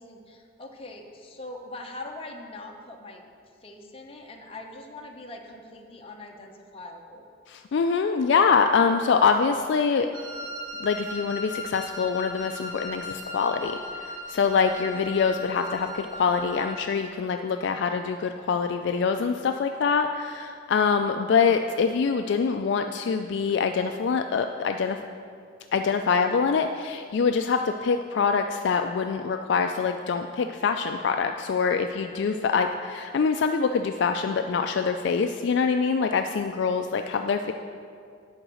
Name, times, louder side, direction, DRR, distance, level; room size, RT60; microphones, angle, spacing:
voice 1, 0.0-3.2 3.6-7.2 26.2-26.5, left 2 dB, 30° left, 1 dB, 0.8 m, -42 dB
voice 2, 7.5-10.1 10.8-13.7 14.3-25.0 25.7-37.5, left 5 dB, 60° left, 6 dB, 0.3 m, -24 dB
Wind instrument woodwind instrument, 10.1-16.9, left 1 dB, 85° right, 1.2 m, -38 dB
11.0 x 3.9 x 7.6 m, 2.3 s
head